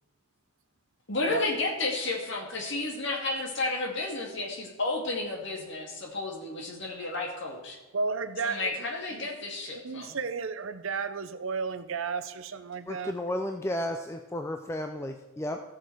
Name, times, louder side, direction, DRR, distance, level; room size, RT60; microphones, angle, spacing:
voice 1, 1.1-7.8 8.4-10.2, left 2 dB, 55° left, 0 dB, 2.1 m, -32 dB
voice 2, 7.9-9.3 9.8-13.1, right 4 dB, 65° right, 11 dB, 0.7 m, -33 dB
voice 3, 12.9-15.6, left 1 dB, 10° left, 5 dB, 0.4 m, -33 dB
15.0 x 6.2 x 4.6 m, 1.1 s
head